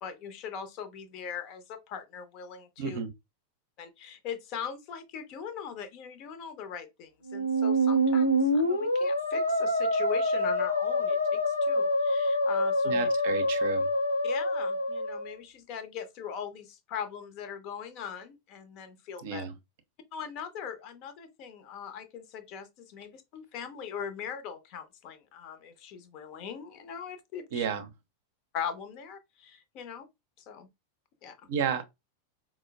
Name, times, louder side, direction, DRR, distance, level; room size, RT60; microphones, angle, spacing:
voice 1, 0.0-3.0 3.8-13.1 14.2-19.4 20.1-27.7 28.5-30.1 30.4-30.7 31.2-31.4, left 7 dB, 40° left, 0.6 m, -40 dB
voice 2, 2.8-3.1 12.8-13.9 19.2-19.5 27.5-27.9 31.5-31.8, right 7 dB, 55° right, 0.5 m, -32 dB
Musical instrument, 7.3-15.3, equal, 85° left, 0.5 m, -26 dB
4.3 x 2.0 x 2.3 m
figure-of-eight pair, 90°, 0 cm